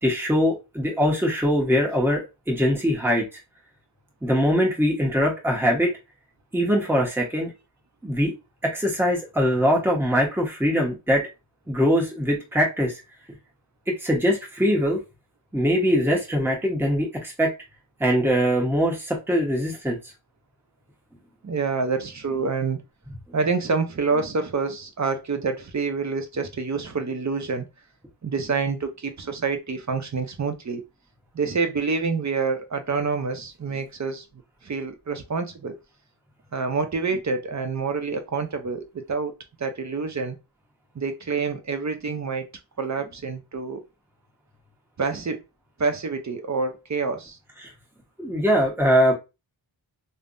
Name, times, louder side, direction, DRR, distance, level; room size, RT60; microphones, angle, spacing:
voice 1, 0.0-2.2 2.5-3.2 4.2-5.9 6.5-7.5 8.0-8.3 8.6-11.2 11.7-12.9 13.9-15.0 15.5-17.5 18.0-20.0 47.6-47.7 48.2-49.1, equal, 5° right, 1.2 m, -22 dB
voice 2, 21.4-22.8 23.3-27.7 28.2-30.8 31.3-34.2 34.6-35.7 36.5-39.3 39.6-40.4 40.9-42.5 42.8-43.8 45.0-45.4 45.8-47.4, right 4 dB, 35° right, 0.7 m, -27 dB
3.3 x 2.1 x 2.6 m
cardioid pair, 40°, 48 cm